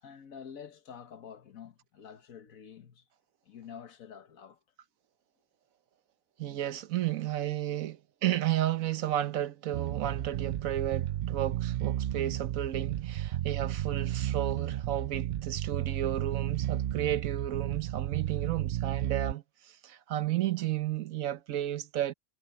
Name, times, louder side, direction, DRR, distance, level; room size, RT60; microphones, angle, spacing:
voice 1, 0.0-3.1 3.4-4.6, left 7 dB, 85° left, 1.7 m, -48 dB
voice 2, 6.4-22.1, right 12 dB, 80° right, 1.3 m, -33 dB
Bass guitar, 9.7-19.3, right 12 dB, 65° right, 0.5 m, -33 dB
omnidirectional pair, 1.4 m